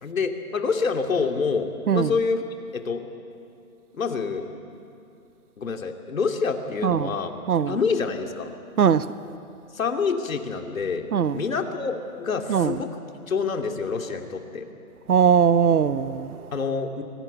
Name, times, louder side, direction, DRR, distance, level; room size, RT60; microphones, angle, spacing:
voice 1, 0.0-2.4 2.7-3.0 3.9-4.5 5.6-7.3 7.7-8.5 9.7-11.1 11.3-14.7 16.5-17.0, left 5 dB, 60° left, 2.6 m, -27 dB
voice 2, 15.1-16.4, right 7 dB, 75° right, 0.9 m, -20 dB
25.0 x 17.5 x 9.2 m
hypercardioid pair, 170°, 45 cm